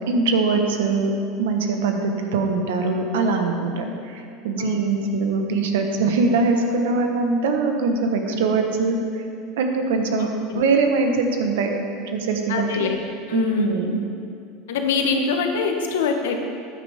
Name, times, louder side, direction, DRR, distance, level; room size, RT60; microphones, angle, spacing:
voice 1, 0.1-1.1 1.4-9.2 9.6-10.3 10.5-12.9 13.3-14.0, right 4 dB, 85° right, 4 dB, 1.3 m, -22 dB
voice 2, 4.6-5.0 10.2-10.6 12.5-13.0 13.3-13.8 14.7-16.5, left 5 dB, 85° left, 4 dB, 1.3 m, -24 dB
14.0 x 9.2 x 3.7 m, 2.5 s
supercardioid pair, 110°, 0 cm